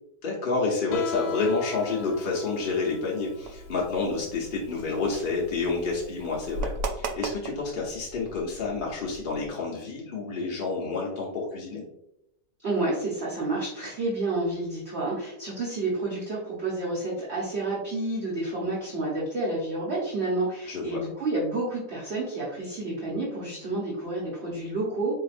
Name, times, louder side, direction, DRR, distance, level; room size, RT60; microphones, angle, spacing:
voice 1, 0.2-11.8 20.7-21.0, left 4 dB, 50° left, -4 dB, 0.6 m, -29 dB
Guitar, 0.9-6.6, left 7 dB, 90° left, 1.3 m, -39 dB
sound 1, 3.4-9.5, right 2 dB, 85° right, 1.2 m, -38 dB
voice 2, 12.6-25.1, right 2 dB, 45° right, -6 dB, 1.1 m, -30 dB
5.0 x 2.8 x 2.5 m, 0.83 s
omnidirectional pair, 1.9 m